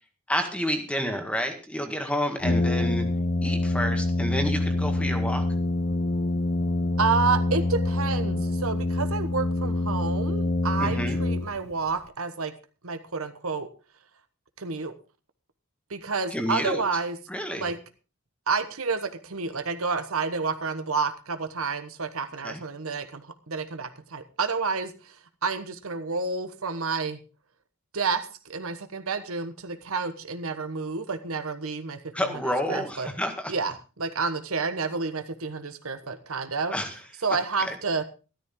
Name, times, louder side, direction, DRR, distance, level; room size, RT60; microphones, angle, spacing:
voice 1, 0.3-3.1 3.4-5.4 10.8-11.2 16.3-16.8 17.3-17.7 22.4-22.6 32.1-33.5 36.7-36.9 37.6-37.8, equal, 5° left, 5 dB, 1.7 m, -29 dB
Brass instrument, 2.4-11.9, left 2 dB, 30° left, 0.7 m, -26 dB
voice 2, 7.0-12.5 12.8-13.7 14.6-14.9 15.9-17.2 17.6-17.8 18.5-27.2 27.9-32.0 32.3-32.4 32.7-33.1 33.5-36.7 37.2-38.0, right 4 dB, 75° right, 10 dB, 1.2 m, -29 dB
13.5 x 13.0 x 3.8 m, 0.34 s
head